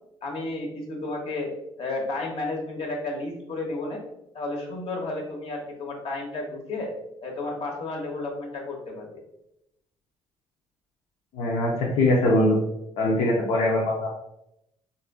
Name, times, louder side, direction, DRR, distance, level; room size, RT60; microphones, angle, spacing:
voice 1, 0.2-1.5 1.8-4.0 4.3-6.9 7.2-9.1, left 2 dB, 55° left, 0 dB, 1.0 m, -32 dB
voice 2, 11.3-12.6 13.0-14.1, left 1 dB, 80° left, -4 dB, 0.7 m, -22 dB
4.0 x 2.6 x 2.3 m, 0.83 s
cardioid pair, 90°, 12 cm